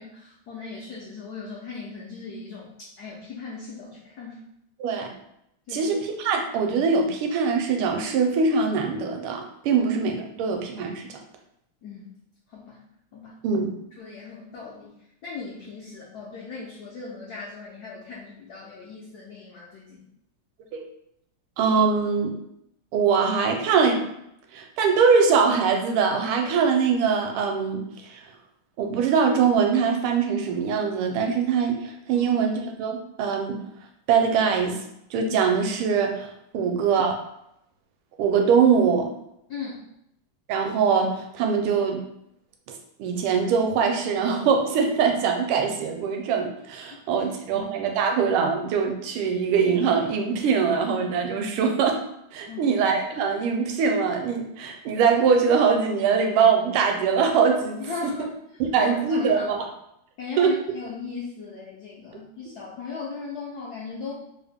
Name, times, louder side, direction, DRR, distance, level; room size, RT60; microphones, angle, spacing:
voice 1, 0.0-2.7 3.0-4.4 5.7-5.9 11.8-12.1 12.5-12.8 13.1-13.4 14.0-14.9 15.2-20.0 32.1-32.3 36.5-36.7 39.5-39.8 46.9-47.7 52.5-52.7 57.8-58.3 58.5-59.5 60.2-64.1, left 4 dB, 80° left, -5 dB, 0.8 m, -38 dB
voice 2, 4.8-5.1 5.7-11.2 13.4-13.7 20.7-20.9 21.6-22.4 22.9-24.1 24.5-28.2 28.8-33.6 34.1-34.8 35.1-37.2 38.2-39.1 40.5-42.0 42.7-52.0 52.3-58.1 58.6-59.7 60.4-60.5, right 6 dB, 80° right, 3 dB, 1.4 m, -22 dB
3.5 x 2.1 x 3.3 m, 0.78 s
omnidirectional pair, 2.4 m